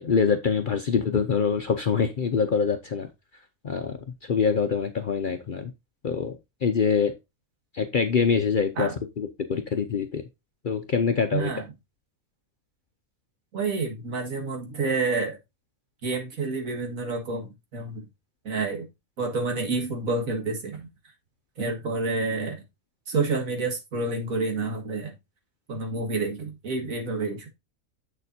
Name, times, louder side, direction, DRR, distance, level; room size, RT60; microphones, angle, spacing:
voice 1, 0.0-3.1 3.6-5.7 6.0-7.1 7.7-8.9 9.2-10.2 10.6-11.5, left 6 dB, 50° left, 0.6 m, -25 dB
voice 2, 11.3-11.7 13.5-15.4 16.0-18.1 18.4-18.9 19.2-20.9 21.6-22.6 23.1-25.2 25.7-27.5, right 3 dB, 70° right, 2.1 m, -29 dB
7.3 x 6.7 x 2.7 m
omnidirectional pair, 1.5 m